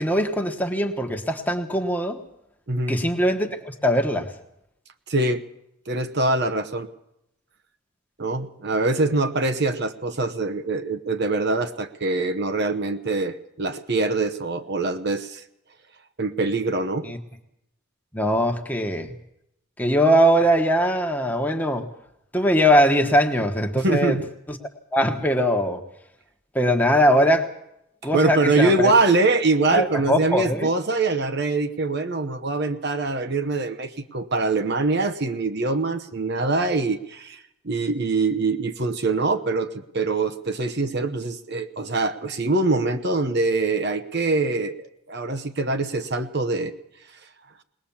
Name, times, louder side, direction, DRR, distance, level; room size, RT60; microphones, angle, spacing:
voice 1, 0.0-2.2 2.9-4.3 17.0-17.2 18.1-19.1 19.8-21.9 22.3-24.2 24.5-24.6 24.9-25.8 26.5-27.5 28.0-28.9 29.7-30.7, equal, 10° left, 4 dB, 1.3 m, -21 dB
voice 2, 5.1-5.4 5.9-6.9 8.2-15.4 16.2-17.1 23.8-24.2 28.1-46.7, right 3 dB, 50° right, 8 dB, 1.0 m, -24 dB
20.5 x 19.5 x 7.2 m, 0.80 s
head